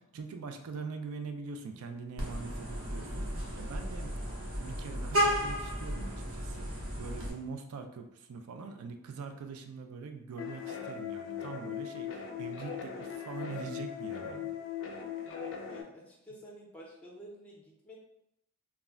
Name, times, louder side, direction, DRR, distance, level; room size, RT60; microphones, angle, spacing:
voice 1, 0.0-3.3 3.5-4.1 4.5-14.5, right 4 dB, 90° right, 6 dB, 0.4 m, -43 dB
Vehicle horn car horn honking, 2.2-7.3, equal, 70° right, 0.8 m, -34 dB
sound 1, 10.4-15.8, left 8 dB, 60° left, 0.4 m, -39 dB
voice 2, 15.7-18.0, equal, 5° left, -4 dB, 0.5 m, -50 dB
2.3 x 2.0 x 3.5 m, 0.81 s
head